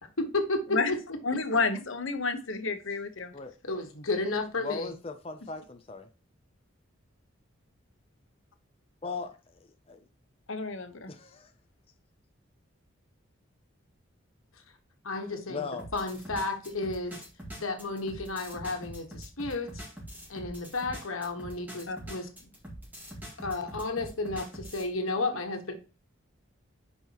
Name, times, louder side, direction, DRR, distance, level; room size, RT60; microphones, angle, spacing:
voice 1, 0.2-1.4 3.6-4.9 15.0-15.7 15.9-17.2 17.5-19.8 20.3-22.5 23.4-25.7, left 2 dB, 90° left, 1.4 m, -32 dB
voice 2, 1.2-3.3 10.5-11.1 21.9-22.0, left 4 dB, 70° left, 1.0 m, -30 dB
voice 3, 4.6-6.1 9.0-10.0 10.9-11.5 15.5-15.9, left 4 dB, 30° left, 0.5 m, -39 dB
sound 1, 15.8-24.9, equal, 10° right, 2.0 m, -44 dB
8.6 x 5.5 x 2.9 m
head